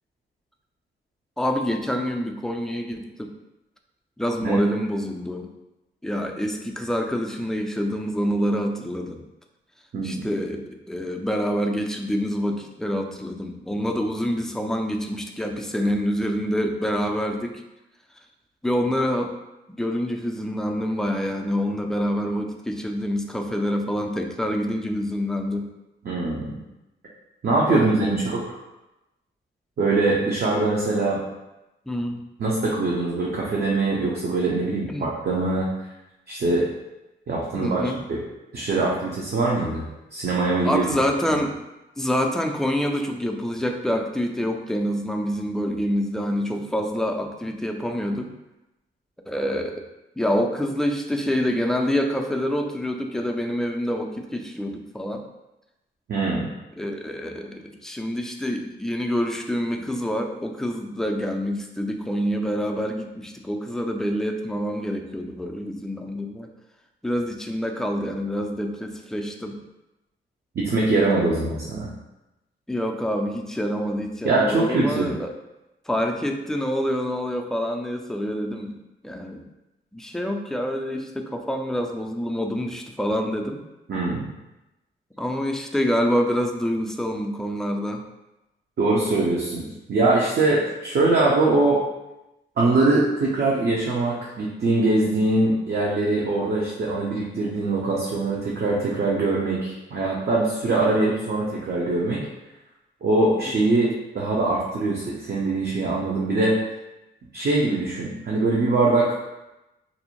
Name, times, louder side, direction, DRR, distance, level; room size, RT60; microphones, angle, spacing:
voice 1, 1.4-3.3 4.2-5.5 6.0-9.2 10.0-17.6 18.6-19.3 19.7-25.7 27.7-28.2 31.9-32.2 34.9-35.1 37.5-38.0 38.8-38.9 40.6-41.5 42.0-48.3 49.3-49.8 50.2-55.2 56.8-66.5 67.0-69.6 72.7-75.3 75.9-78.7 79.0-79.4 79.9-83.6 85.2-88.0 100.6-100.9 103.5-103.8, equal, ahead, 3 dB, 0.3 m, -26 dB
voice 2, 9.9-10.3 26.0-26.6 27.4-28.5 29.8-31.2 32.4-35.7 36.3-36.7 37.3-37.8 38.1-38.2 38.5-40.8 56.1-56.5 70.5-71.9 74.2-75.1 83.9-84.3 88.8-91.8 92.6-102.2 103.0-106.6 107.3-109.1, right 2 dB, 50° right, -4 dB, 0.6 m, -22 dB
2.6 x 2.0 x 2.9 m, 0.97 s
cardioid pair, 60°, 21 cm